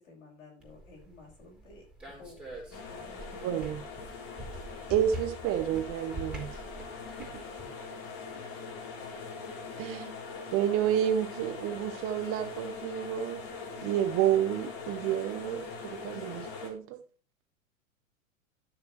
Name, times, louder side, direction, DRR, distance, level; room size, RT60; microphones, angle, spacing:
voice 1, 0.0-4.0 4.7-4.8, left 3 dB, 75° left, 5.9 m, -53 dB
sound 1, 0.6-7.7, right 1 dB, 5° right, 3.8 m, -45 dB
sound 2, 2.7-16.7, left 4 dB, 50° left, 3.1 m, -42 dB
voice 2, 3.4-3.8 4.9-6.5 7.2-7.4 7.9-8.0 9.8-10.2 10.5-13.4 13.8-17.0, right 10 dB, 35° right, 1.0 m, -30 dB
12.5 x 6.9 x 3.2 m
hypercardioid pair, 105°, 39 cm